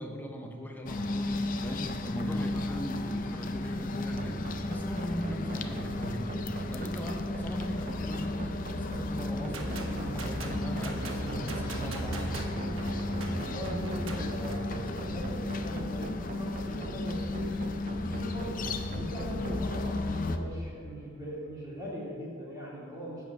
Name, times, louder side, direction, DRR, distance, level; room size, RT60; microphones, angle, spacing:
voice 1, 0.0-12.6, equal, 10° left, 2 dB, 0.9 m, -40 dB
sound 1, 0.9-20.4, left 2 dB, 45° left, 0.5 m, -34 dB
sound 2, 4.2-19.8, right 3 dB, 40° right, 0.4 m, -43 dB
sound 3, 9.4-14.6, right 2 dB, 85° right, 1.1 m, -38 dB
voice 2, 13.3-17.5 18.0-18.7 18.9-23.2, right 1 dB, 20° right, -6 dB, 2.1 m, -40 dB
8.5 x 7.1 x 5.4 m, 2.4 s
head